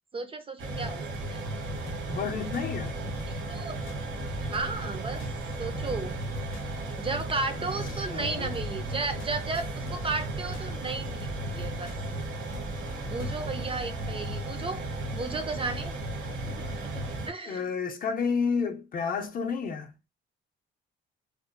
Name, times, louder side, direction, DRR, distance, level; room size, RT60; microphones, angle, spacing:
voice 1, 0.1-1.0 1.3-1.4 3.5-3.8 4.4-5.2 5.6-6.1 7.0-11.9 13.1-14.8 15.1-15.9 16.6-17.7, right 3 dB, 30° right, 0.4 m, -34 dB
sound 1, 0.6-17.3, right 2 dB, 70° right, 0.8 m, -35 dB
sound 2, 1.8-13.3, left 2 dB, 85° left, 0.7 m, -48 dB
voice 2, 2.1-3.0 8.1-8.6 17.5-19.9, left 5 dB, 45° left, 0.5 m, -30 dB
2.5 x 2.2 x 2.4 m
cardioid pair, 90°, 20 cm